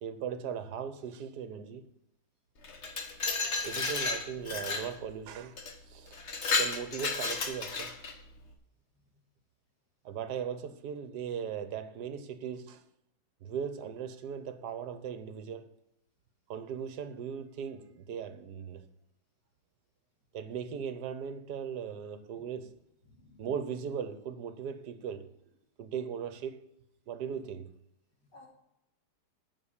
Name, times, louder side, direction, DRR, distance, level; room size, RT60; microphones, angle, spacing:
voice 1, 0.0-1.9 3.6-5.6 5.9-6.2 6.6-7.9 10.0-12.8 13.4-15.7 16.5-18.9 20.3-22.7 23.4-25.3 25.8-26.6 27.1-27.7, right 7 dB, 70° right, 1.4 m, -38 dB
Glass, 2.6-4.9 5.6-5.7 6.1-8.2, left 4 dB, 45° left, 1.2 m, -32 dB
voice 2, 23.0-23.5 28.2-28.5, left 2 dB, 75° left, 3.5 m, -56 dB
9.4 x 5.9 x 7.2 m
omnidirectional pair, 1.9 m